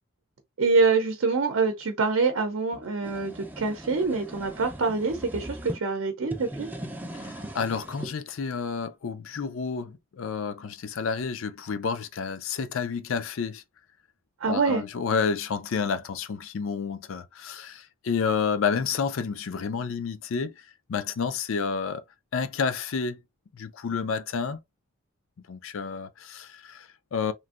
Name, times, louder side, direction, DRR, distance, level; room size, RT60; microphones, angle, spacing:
voice 1, 0.6-6.7 14.4-14.8, right 4 dB, 70° right, 0.6 m, -25 dB
sound 1, 2.7-5.8 6.2-8.1, right 1 dB, 10° right, 0.4 m, -39 dB
voice 2, 7.2-13.6 14.5-20.5 20.9-22.0 22.3-23.2 23.5-24.6 25.5-27.3, left 5 dB, 70° left, 0.4 m, -30 dB
3.1 x 2.5 x 2.4 m
head